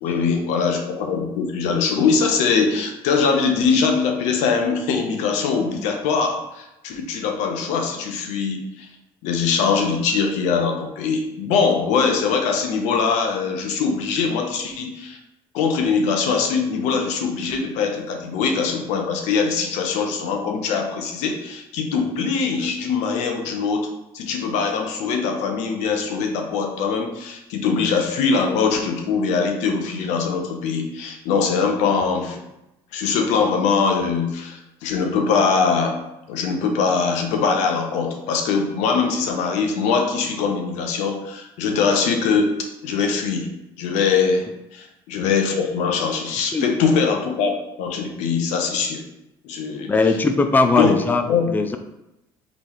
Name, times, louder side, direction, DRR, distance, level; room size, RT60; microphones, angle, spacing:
voice 1, 0.0-8.9 9.2-15.2 15.5-23.9 24.1-32.4 32.9-36.0 36.3-42.5 42.8-43.5 43.8-44.5 44.7-49.0 49.4-49.9 50.7-51.0 51.3-51.5, left 5 dB, 80° left, 3 dB, 0.7 m, -22 dB
voice 2, 49.9-51.2 51.5-51.8, left 3 dB, 15° left, 7 dB, 0.4 m, -19 dB
4.0 x 3.5 x 3.1 m, 0.91 s
supercardioid pair, 80°, 12 cm